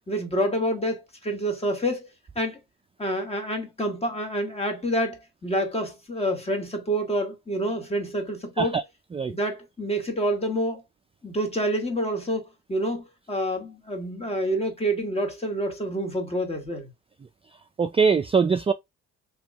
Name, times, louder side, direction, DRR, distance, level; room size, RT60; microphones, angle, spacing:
voice 1, 0.1-2.1 2.3-2.6 3.0-8.8 9.3-10.8 11.2-16.9, right 1 dB, 20° left, 1.5 m, -28 dB
voice 2, 17.8-18.7, right 5 dB, 20° right, 0.3 m, -22 dB
3.4 x 3.0 x 3.5 m
cardioid pair, 90°, 30 cm